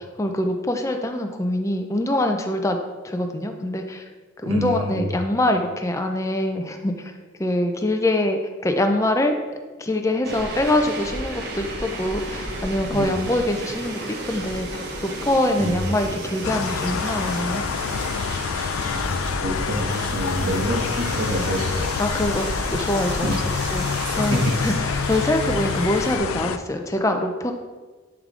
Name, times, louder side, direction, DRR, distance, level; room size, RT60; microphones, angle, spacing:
voice 1, 0.0-2.8 3.0-4.0 4.4-7.1 7.4-9.3 9.8-17.6 22.0-27.5, left 1 dB, 15° left, 5 dB, 0.5 m, -24 dB
voice 2, 4.4-5.0 12.9-13.2 15.6-15.8 18.9-21.9 23.2-23.4 24.1-24.5, equal, 70° right, -1 dB, 1.5 m, -27 dB
sound 1, 10.2-26.2, right 2 dB, 50° right, 1.0 m, -33 dB
sound 2, 16.4-26.6, left 6 dB, 90° left, 0.4 m, -27 dB
10.5 x 3.6 x 3.8 m, 1.4 s
head